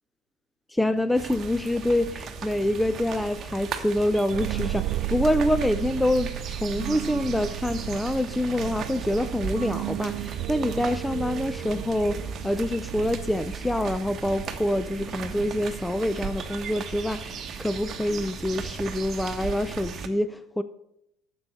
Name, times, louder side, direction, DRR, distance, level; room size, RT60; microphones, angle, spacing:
voice 1, 0.7-20.6, left 1 dB, 5° left, 0.5 m, -26 dB
sound 1, 1.1-20.1, right 6 dB, 35° right, 1.2 m, -36 dB
sound 2, 4.3-14.0, right 17 dB, 55° right, 0.4 m, -34 dB
9.7 x 7.0 x 6.5 m
hypercardioid pair, 75°, 0 cm